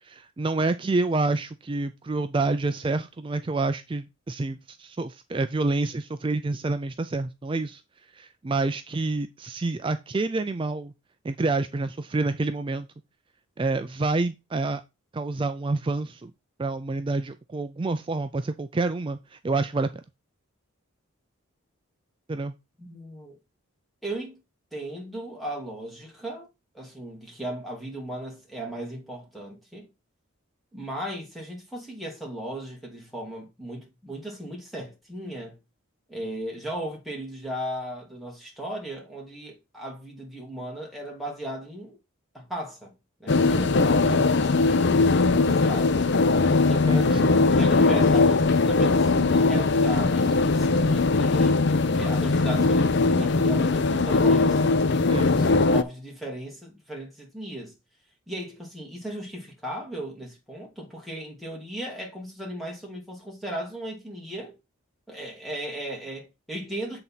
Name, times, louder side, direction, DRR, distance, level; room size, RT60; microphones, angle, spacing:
voice 1, 0.0-7.8 8.1-10.9 11.2-12.9 13.6-14.8 15.1-16.3 16.6-20.0 22.3-22.5 44.1-44.3 46.9-47.4 55.1-55.7, right 3 dB, 25° right, 0.3 m, -28 dB
voice 2, 22.8-23.4 24.0-24.4 24.7-26.5 26.7-29.9 30.7-35.6 36.1-42.0 42.3-42.9 43.2-46.0 46.6-51.6 52.0-54.6 55.5-57.7 58.3-64.6 65.1-67.0, right 1 dB, ahead, 2.7 m, -36 dB
sound 1, 43.3-55.8, left 3 dB, 50° left, 0.6 m, -20 dB
7.8 x 4.0 x 5.7 m
head